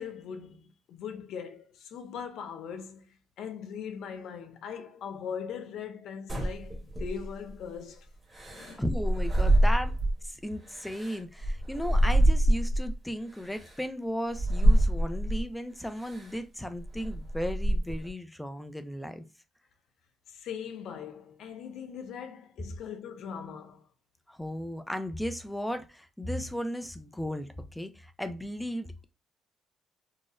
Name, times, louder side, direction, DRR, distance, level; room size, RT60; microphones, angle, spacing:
voice 1, 0.0-8.1 8.5-8.8 20.3-23.9, left 7 dB, 70° left, 0.5 m, -40 dB
sound 1, 6.3-7.5 8.3-10.3 10.7-12.9 13.6-13.7 14.3-15.5 16.0-16.3 16.8-18.1, right 1 dB, 15° right, 1.1 m, -25 dB
voice 2, 8.8-10.0 10.2-19.2 24.3-29.0, equal, 5° left, 0.4 m, -35 dB
3.9 x 2.0 x 2.4 m
cardioid pair, 150°, 0 cm